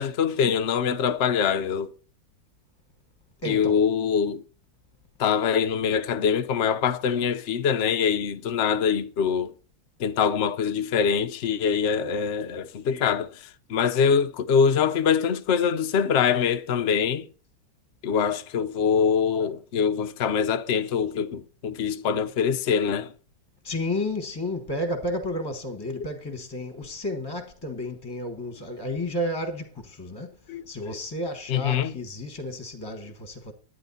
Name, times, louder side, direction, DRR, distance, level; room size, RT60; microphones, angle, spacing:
voice 1, 0.0-1.9 3.4-4.4 5.2-9.5 10.0-13.3 13.7-17.2 18.0-23.1 30.5-31.0 31.5-31.9, left 7 dB, 85° left, 0.6 m, -24 dB
voice 2, 3.4-3.8 23.6-30.4 30.7-33.5, left 1 dB, 15° left, 1.0 m, -32 dB
11.0 x 9.7 x 4.1 m
omnidirectional pair, 2.3 m